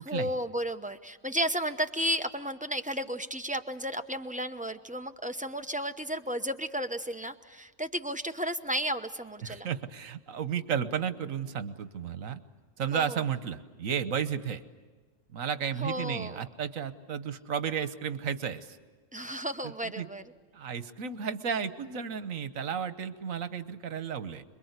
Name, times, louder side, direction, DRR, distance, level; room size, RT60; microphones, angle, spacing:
voice 1, 0.0-9.7 12.9-13.2 15.8-16.4 19.1-20.2, equal, 5° right, 6 dB, 0.7 m, -33 dB
voice 2, 9.4-12.4 12.8-14.6 15.3-18.8 20.0-20.1 20.5-24.4, right 7 dB, 80° right, 11 dB, 1.5 m, -33 dB
27.0 x 22.5 x 8.1 m, 1.4 s
omnidirectional pair, 1.4 m